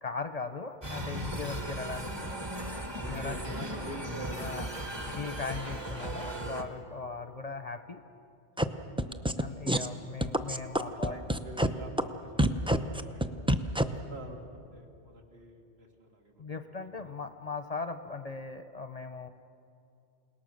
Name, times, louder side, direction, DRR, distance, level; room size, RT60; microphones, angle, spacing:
voice 1, 0.0-2.4 3.1-3.4 4.4-4.7 5.0-8.0 9.4-11.2 16.4-19.3, left 4 dB, 40° left, 9 dB, 0.7 m, -39 dB
sound 1, 0.8-6.6, right 1 dB, 25° right, 1.6 m, -37 dB
voice 2, 3.0-5.3 8.9-9.1 10.9-13.3 13.9-17.1, right 1 dB, 65° right, 1 dB, 2.9 m, -47 dB
sound 2, 8.6-8.7 9.0-9.4 9.7-9.9 10.2-11.7 12.0-12.1 12.4-13.8, right 1 dB, 5° right, 0.5 m, -25 dB
28.5 x 18.5 x 6.5 m, 2.6 s
omnidirectional pair, 1.1 m